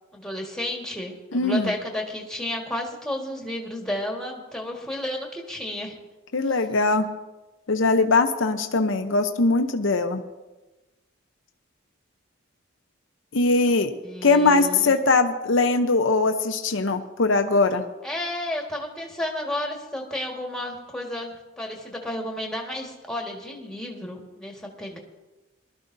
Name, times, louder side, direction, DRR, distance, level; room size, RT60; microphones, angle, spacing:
voice 1, 0.1-6.0 13.6-13.7 14.0-14.9 18.0-25.0, left 1 dB, 5° left, 0 dB, 1.7 m, -32 dB
voice 2, 1.3-1.7 6.3-7.1 7.7-10.2 13.3-13.9 14.2-17.8, left 3 dB, 65° left, 6 dB, 0.8 m, -21 dB
21.0 x 12.5 x 2.7 m, 1.1 s
head